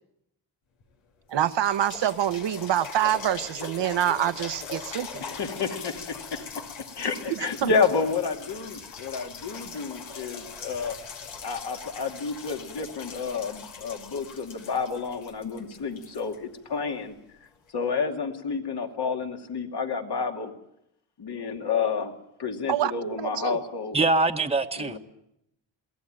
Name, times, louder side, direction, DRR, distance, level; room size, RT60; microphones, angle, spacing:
sound 1, 0.8-0.9 1.3-17.0 17.7-17.8, left 5 dB, 85° left, 2.6 m, -41 dB
voice 1, 1.3-5.2 7.3-7.7 22.7-23.6, right 11 dB, 70° right, 12 dB, 1.1 m, -26 dB
voice 2, 5.3-6.0 6.3-6.5 6.9-11.0 11.4-17.1 17.7-20.5 21.2-22.1 22.4-24.0 24.8-25.0, left 5 dB, 60° left, 4 dB, 2.7 m, -30 dB
voice 3, 23.9-25.0, right 3 dB, 15° right, 5 dB, 1.2 m, -23 dB
23.0 x 16.0 x 8.9 m, 0.81 s
cardioid pair, 70°, 45 cm